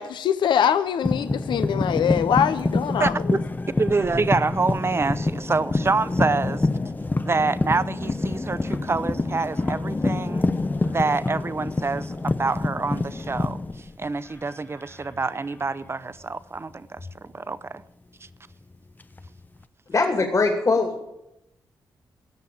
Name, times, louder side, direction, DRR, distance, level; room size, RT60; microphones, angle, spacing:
voice 1, 0.0-3.2, left 8 dB, 80° left, 12 dB, 0.5 m, -23 dB
sound 1, 1.0-14.5 14.8-15.2 17.0-17.2 19.0-19.6, left 2 dB, 25° left, 0.7 m, -27 dB
voice 2, 3.0-3.4 3.8-6.7 7.2-10.4 10.8-13.6 14.0-17.8, right 4 dB, 30° right, 15 dB, 0.7 m, -26 dB
voice 3, 19.9-20.9, left 3 dB, 45° left, 2 dB, 2.5 m, -21 dB
17.0 x 6.5 x 8.4 m, 0.88 s
cardioid pair, 60°, 8 cm